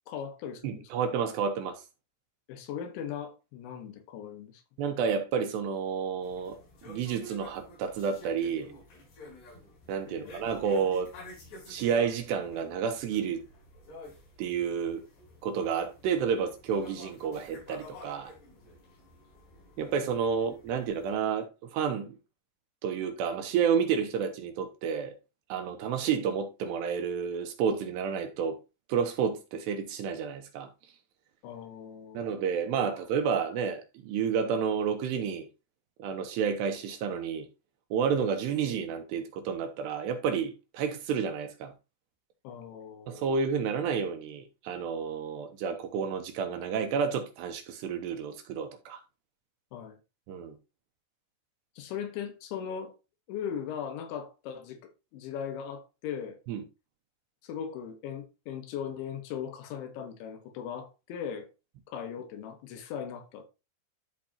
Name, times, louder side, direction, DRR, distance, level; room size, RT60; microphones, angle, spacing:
voice 1, 0.1-0.9 2.5-4.6 10.1-10.3 31.4-32.3 42.4-43.2 49.7-50.0 51.8-52.9 53.3-54.8 55.1-56.4 57.4-61.5 61.9-63.5, left 8 dB, 80° left, 3.5 m, -38 dB
voice 2, 0.6-1.8 4.8-6.6 6.8-8.7 9.9-11.1 11.7-13.4 14.4-15.0 15.4-18.3 19.8-22.2 22.8-25.1 25.5-28.6 28.9-30.7 32.1-35.5 36.0-37.5 37.9-41.7 43.1-49.0 50.3-50.6 56.5-56.6, right 6 dB, 75° right, 2.8 m, -30 dB
sound 1, 6.2-21.1, equal, 60° left, 6.5 m, -50 dB
12.5 x 4.8 x 2.8 m
omnidirectional pair, 5.4 m